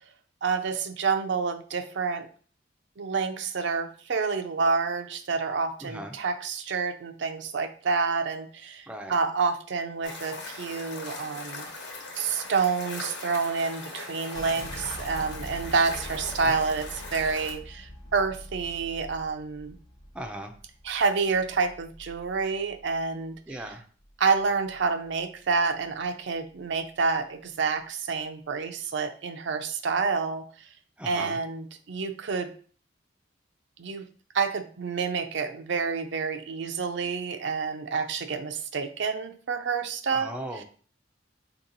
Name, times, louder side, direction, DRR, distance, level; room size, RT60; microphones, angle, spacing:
voice 1, 0.4-2.3 3.0-11.7 12.2-19.7 20.8-23.7 24.2-30.7 31.0-32.5 33.8-34.0 34.3-40.6, right 4 dB, 70° right, 7 dB, 0.5 m, -28 dB
voice 2, 5.8-6.1 8.9-9.1 16.3-16.5 20.1-20.5 23.5-23.8 31.0-31.4 40.1-40.6, right 1 dB, 5° right, 3 dB, 0.5 m, -37 dB
sound 1, 10.0-17.5, left 3 dB, 70° left, 1.1 m, -40 dB
sound 2, 14.3-23.7 24.0-25.3 25.6-26.1 26.5-27.1, equal, 20° left, 0.8 m, -44 dB
4.5 x 2.9 x 3.9 m, 0.43 s
head